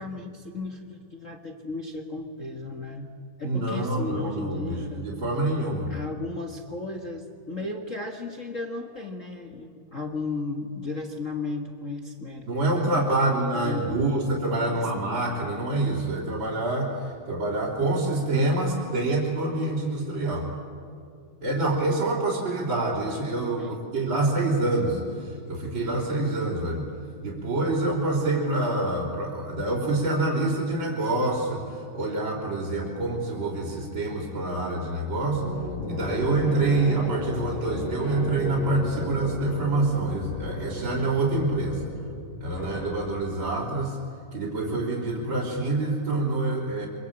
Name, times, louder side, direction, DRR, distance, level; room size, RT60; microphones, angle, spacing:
voice 1, 0.0-3.1 3.4-5.0 5.9-12.5 12.9-14.1 14.7-14.9 23.6-24.2, left 3 dB, 55° left, 4 dB, 0.8 m, -35 dB
voice 2, 3.4-5.9 12.4-20.5 21.4-26.9 27.2-35.4 35.9-41.8 42.4-44.0 44.3-46.9, right 2 dB, 35° right, -3 dB, 4.2 m, -26 dB
sound 1, 35.3-43.4, left 1 dB, 75° left, 9.9 m, -34 dB
26.0 x 25.5 x 8.7 m, 2.4 s
omnidirectional pair, 3.8 m